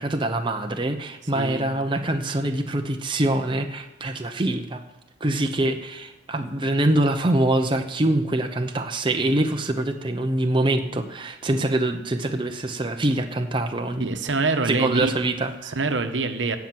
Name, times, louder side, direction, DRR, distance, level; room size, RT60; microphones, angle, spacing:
voice 1, 0.0-4.8 5.2-14.1 14.7-15.8, right 1 dB, 25° right, 5 dB, 0.7 m, -24 dB
voice 2, 1.3-1.7 14.0-15.1 15.7-16.6, right 3 dB, 80° right, 7 dB, 1.1 m, -25 dB
17.0 x 5.8 x 7.7 m, 0.96 s
head